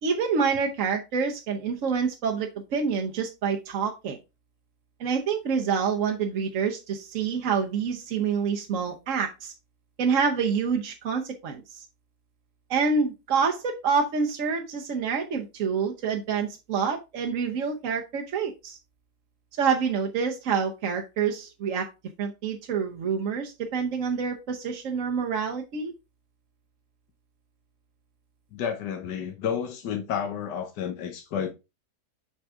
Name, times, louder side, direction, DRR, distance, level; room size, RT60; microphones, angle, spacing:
voice 1, 0.0-4.2 5.0-9.5 10.0-11.8 12.7-18.8 19.6-21.9 22.2-25.9, right 6 dB, 55° right, 1.1 m, -27 dB
voice 2, 28.5-31.5, left 8 dB, 85° left, 1.5 m, -31 dB
6.9 x 4.7 x 3.6 m
omnidirectional pair, 1.8 m